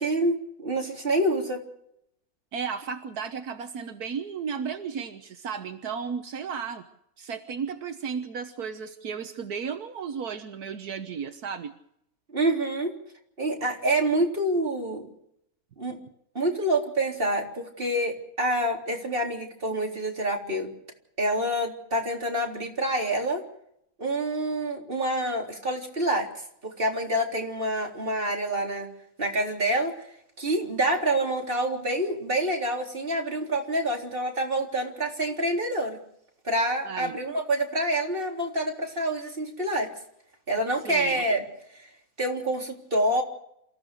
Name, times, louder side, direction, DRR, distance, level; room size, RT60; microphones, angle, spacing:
voice 1, 0.0-1.6 12.3-12.9 13.4-15.1 15.8-16.0 16.3-20.7 21.2-23.4 24.0-26.3 26.6-28.9 29.2-29.9 30.4-36.0 36.4-39.9 40.5-41.4 41.8-41.9 42.2-43.2, right 1 dB, 35° right, 1 dB, 4.0 m, -27 dB
voice 2, 2.5-6.8 7.2-11.7 36.8-37.2 40.8-41.2, right 6 dB, 80° right, 7 dB, 1.7 m, -34 dB
28.0 x 15.0 x 6.5 m, 0.73 s
omnidirectional pair, 1.6 m